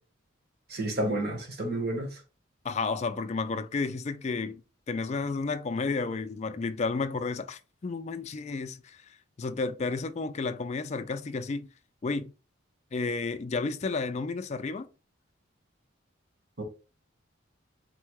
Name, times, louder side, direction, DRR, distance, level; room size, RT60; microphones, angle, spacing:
voice 1, 0.7-2.1 16.6-16.7, right 1 dB, 45° right, 1.1 m, -30 dB
voice 2, 2.6-4.6 4.9-11.7 12.0-12.3 12.9-14.9, left 4 dB, 30° left, 0.3 m, -32 dB
4.3 x 2.2 x 4.6 m
head